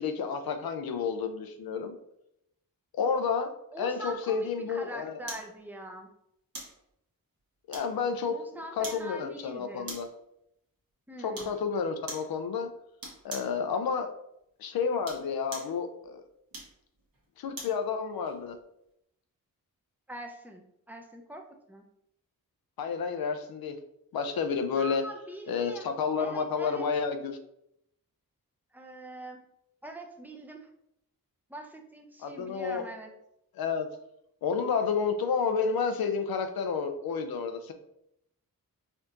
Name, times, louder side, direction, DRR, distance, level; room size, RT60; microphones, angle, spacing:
voice 1, 0.0-2.0 2.9-3.5 3.8-5.2 7.7-8.4 8.8-10.1 11.2-12.7 13.2-14.1 14.6-16.2 17.4-18.6 22.8-23.8 24.1-25.0 25.5-27.4 32.2-32.9 33.6-33.9 34.4-37.7, left 5 dB, 85° left, 7 dB, 0.5 m, -30 dB
voice 2, 3.7-6.1 8.3-9.9 11.1-11.5 20.1-21.9 24.7-25.9 26.2-26.9 28.7-29.4 29.8-30.7 31.5-33.1, right 1 dB, 5° right, 2 dB, 0.5 m, -43 dB
sound 1, 5.3-5.5 6.5-6.8 7.7-8.2 8.8-9.1 9.9-10.2 11.3-11.6 12.1-12.3 13.0-13.6 14.9-15.8 16.5-17.8 18.3-18.4, right 2 dB, 70° right, 1.2 m, -42 dB
4.3 x 2.8 x 2.5 m, 0.78 s
wide cardioid pair, 80°, 35 cm